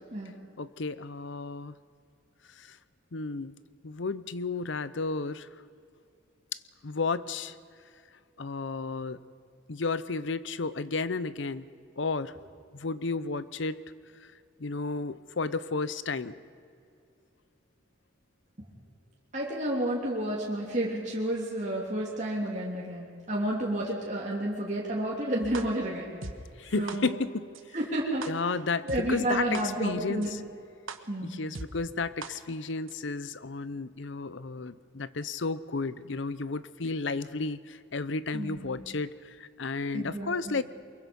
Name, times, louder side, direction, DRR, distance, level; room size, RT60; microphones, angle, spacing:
voice 1, 0.6-1.7 2.6-2.8 3.1-3.6 3.8-5.5 6.8-7.6 8.4-9.2 9.7-11.7 12.0-12.3 12.7-13.8 14.6-16.3 26.6-27.5 28.3-30.4 31.2-40.6, left 3 dB, 70° left, 15 dB, 0.7 m, -32 dB
voice 2, 19.3-26.2 26.8-27.1 27.7-28.3 28.9-30.3 31.1-31.4 38.3-38.8 39.9-40.6, right 1 dB, 35° right, -4 dB, 3.1 m, -31 dB
sound 1, 25.5-25.6 26.2-26.3 26.9-27.0 27.5-27.6 28.2-28.3 28.9-29.0 29.5-29.6 30.2-30.3 30.9-31.0 31.5-31.7 32.2-32.3 32.9-33.0, right 4 dB, 85° right, 1.3 m, -37 dB
23.5 x 22.0 x 5.4 m, 2.4 s
head